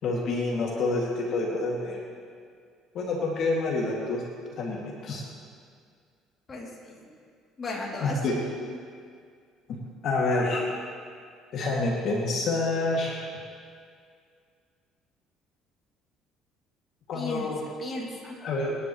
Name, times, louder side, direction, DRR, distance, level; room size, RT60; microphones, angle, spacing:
voice 1, 0.0-2.0 2.9-4.2 4.6-5.2 8.0-8.4 10.0-10.6 11.5-13.2 17.1-17.6 18.4-18.8, left 2 dB, 60° left, -3 dB, 2.4 m, -27 dB
voice 2, 6.5-7.1 7.6-8.4 17.1-17.5 17.8-18.4, left 2 dB, 30° left, -3 dB, 2.9 m, -35 dB
26.0 x 11.0 x 3.2 m, 2.1 s
cardioid pair, 105°, 0 cm